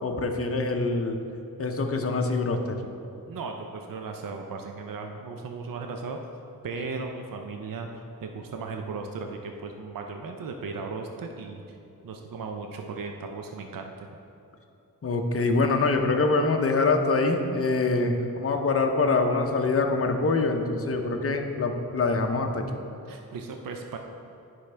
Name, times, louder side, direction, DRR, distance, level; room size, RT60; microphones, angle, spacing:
voice 1, 0.0-1.2 1.6-2.8 15.0-22.8, left 3 dB, 40° left, 3 dB, 0.7 m, -25 dB
voice 2, 3.3-6.2 6.6-11.8 12.0-14.1 23.1-24.0, right 4 dB, 65° right, 3 dB, 0.6 m, -36 dB
10.0 x 5.3 x 3.3 m, 2.7 s
wide cardioid pair, 105°, 36 cm